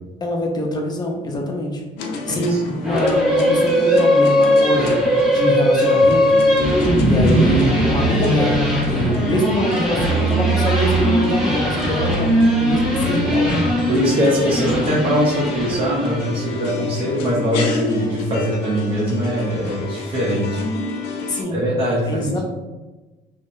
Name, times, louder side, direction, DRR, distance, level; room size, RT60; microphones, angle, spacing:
voice 1, 0.2-1.8 2.3-2.6 2.8-13.5 21.3-21.6 22.1-22.4, equal, 25° left, 0 dB, 0.5 m, -24 dB
sound 1, 2.0-21.4, left 3 dB, 85° left, 0.4 m, -29 dB
voice 2, 2.3-2.8 13.9-20.6 21.5-22.4, equal, 30° right, -6 dB, 0.7 m, -21 dB
sound 2, 2.8-16.4, equal, 5° right, 1.5 m, -19 dB
sound 3, 6.0-7.1 7.4-9.2 9.5-11.2 11.5-13.9, right 4 dB, 60° right, 0.9 m, -26 dB
2.7 x 2.0 x 2.6 m, 1.2 s
cardioid pair, 110°, 17 cm